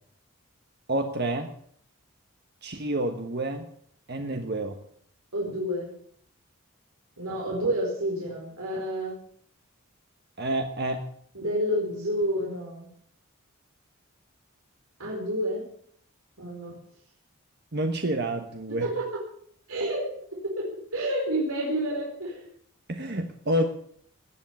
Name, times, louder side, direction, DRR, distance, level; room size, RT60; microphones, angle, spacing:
voice 1, 0.9-1.5 2.6-3.6 4.1-4.8 10.4-11.0 17.7-18.9 22.9-23.7, right 1 dB, 50° right, 5 dB, 1.2 m, -28 dB
voice 2, 5.3-5.9 7.2-9.1 11.3-12.9 15.0-15.6 16.4-16.8 18.8-19.0 19.7-20.1 20.4-22.4, right 1 dB, 90° right, -4 dB, 4.6 m, -29 dB
18.5 x 7.3 x 8.8 m, 0.63 s
head